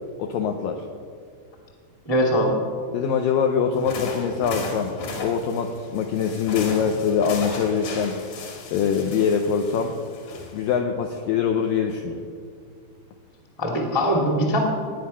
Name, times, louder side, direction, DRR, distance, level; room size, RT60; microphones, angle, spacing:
voice 1, 0.2-0.8 2.9-8.2 8.7-9.9 10.5-12.3, left 7 dB, 90° left, 3 dB, 1.9 m, -23 dB
voice 2, 2.0-2.6 13.6-14.6, equal, 15° left, 0 dB, 1.0 m, -21 dB
sound 1, 3.8-10.8, left 3 dB, 55° left, 3.3 m, -36 dB
18.5 x 9.5 x 5.7 m, 2.1 s
omnidirectional pair, 5.0 m